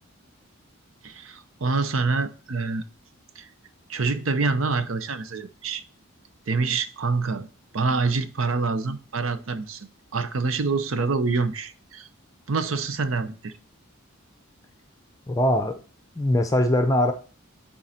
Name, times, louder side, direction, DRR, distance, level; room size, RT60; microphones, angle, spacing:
voice 1, 1.0-2.9 3.4-3.5 3.9-5.8 6.5-7.5 7.7-12.1 12.5-13.5, right 4 dB, 70° right, 0.7 m, -26 dB
voice 2, 15.3-15.8 16.2-17.1, left 1 dB, 15° left, 0.6 m, -21 dB
9.1 x 3.9 x 4.2 m
head